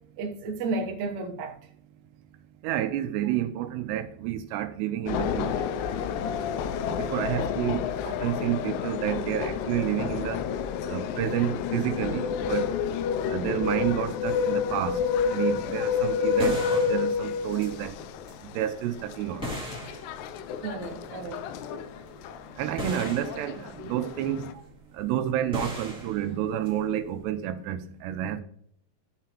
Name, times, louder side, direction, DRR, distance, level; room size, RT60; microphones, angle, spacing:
voice 1, 0.2-1.6 7.3-7.5 20.6-21.4, right 3 dB, 65° right, 2.0 m, -32 dB
voice 2, 2.6-5.7 6.8-10.4 10.9-12.7 13.3-15.0 15.3-18.0 18.5-19.5 22.6-24.5 24.9-28.4, right 11 dB, 85° right, 2.9 m, -30 dB
sound 1, 5.1-24.5, left 6 dB, 85° left, 2.6 m, -30 dB
sound 2, 15.5-27.2, equal, ahead, 1.2 m, -39 dB
12.0 x 5.7 x 3.0 m
omnidirectional pair, 4.8 m